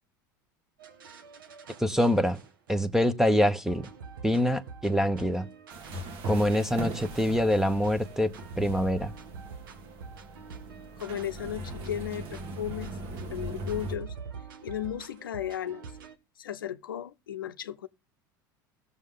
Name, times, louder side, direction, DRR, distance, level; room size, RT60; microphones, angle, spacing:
sound 1, 0.8-3.1 3.7-16.2, right 5 dB, 85° right, 1.5 m, -46 dB
voice 1, 1.8-2.4 2.7-3.9 4.2-5.5 6.2-9.1, equal, 5° right, 1.1 m, -25 dB
sound 2, 5.7-14.0, right 1 dB, 55° right, 1.9 m, -40 dB
voice 2, 11.0-13.0 13.3-14.1 14.6-15.9 16.4-17.9, left 10 dB, 90° left, 0.7 m, -35 dB
18.0 x 7.0 x 3.8 m
hypercardioid pair, 85°, 11 cm